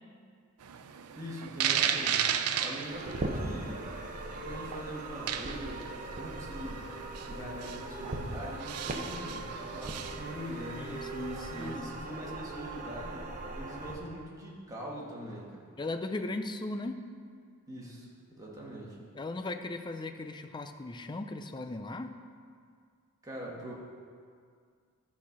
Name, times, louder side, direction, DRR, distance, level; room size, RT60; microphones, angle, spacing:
sound 1, 0.6-11.8, right 9 dB, 85° right, 0.5 m, -36 dB
voice 1, 1.2-2.3 2.6-3.9 4.3-6.9 7.3-11.0 11.3-15.7 17.7-19.0 23.2-23.7, equal, 15° right, -5 dB, 1.6 m, -42 dB
sound 2, 2.9-14.0, right 2 dB, 35° right, 0.9 m, -40 dB
voice 2, 10.7-11.8 15.8-17.0 19.2-22.1, left 2 dB, 20° left, 7 dB, 0.4 m, -37 dB
12.5 x 4.2 x 5.9 m, 2.1 s
head